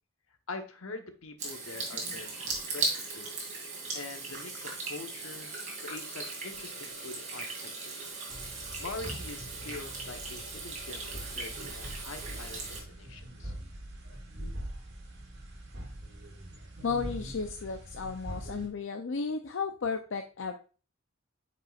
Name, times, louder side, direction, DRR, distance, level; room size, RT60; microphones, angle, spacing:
voice 1, 0.5-3.3 3.9-8.0 8.8-13.5, left 3 dB, 75° left, 6 dB, 1.1 m, -44 dB
Water tap faucet / Sink (filling or washing), 1.4-12.8, right 3 dB, 35° right, 2.4 m, -38 dB
sound 1, 8.3-18.7, right 1 dB, 55° right, 2.0 m, -43 dB
voice 2, 16.8-20.5, left 5 dB, 60° left, 6 dB, 0.5 m, -34 dB
9.1 x 5.4 x 2.4 m, 0.36 s
head